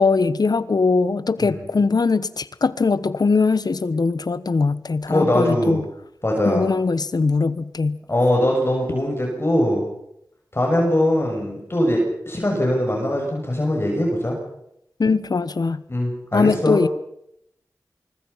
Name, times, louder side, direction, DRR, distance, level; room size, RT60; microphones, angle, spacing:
voice 1, 0.0-5.8 6.5-8.0 15.0-15.8 16.3-16.9, left 4 dB, 70° left, 1.2 m, -21 dB
voice 2, 5.1-5.8 6.2-6.7 8.1-9.9 10.5-14.4 15.9-16.8, left 1 dB, 35° left, 7.4 m, -21 dB
25.0 x 24.5 x 5.8 m
wide cardioid pair, 50°, 7 cm